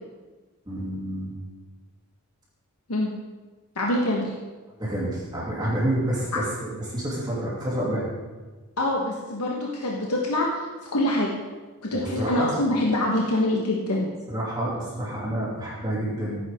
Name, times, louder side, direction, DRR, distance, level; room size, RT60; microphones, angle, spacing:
voice 1, 0.7-1.3 4.8-8.0 11.9-12.5 14.3-16.4, right 1 dB, 20° right, -6 dB, 2.7 m, -28 dB
voice 2, 3.8-4.3 8.8-10.6 10.9-11.3 11.8-14.1, left 1 dB, 80° left, -1 dB, 1.3 m, -25 dB
15.5 x 9.4 x 3.7 m, 1.3 s
head